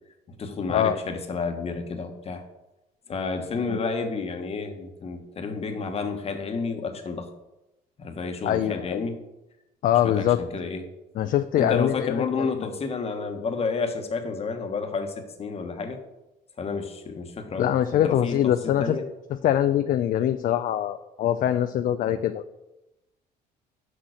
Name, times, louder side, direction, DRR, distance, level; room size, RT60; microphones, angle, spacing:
voice 1, 0.3-2.4 3.1-7.3 8.0-9.2 10.0-10.8 11.6-16.0 16.6-19.0 22.1-22.2, left 4 dB, 35° left, 5 dB, 1.2 m, -31 dB
voice 2, 8.4-9.0 9.8-10.4 11.2-12.7 17.6-19.0 19.4-22.4, left 11 dB, 55° left, 10 dB, 0.4 m, -23 dB
6.4 x 5.6 x 6.4 m, 0.97 s
cardioid pair, 110°, 17 cm